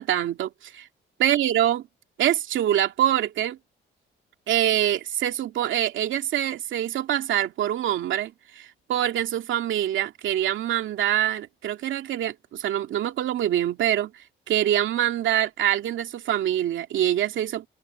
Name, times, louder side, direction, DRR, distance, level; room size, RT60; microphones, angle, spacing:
voice 1, 0.0-0.9 1.2-1.9 2.2-3.6 4.5-17.7, right 11 dB, 75° right, 2.5 m, -25 dB
cardioid pair, 90°, 20 cm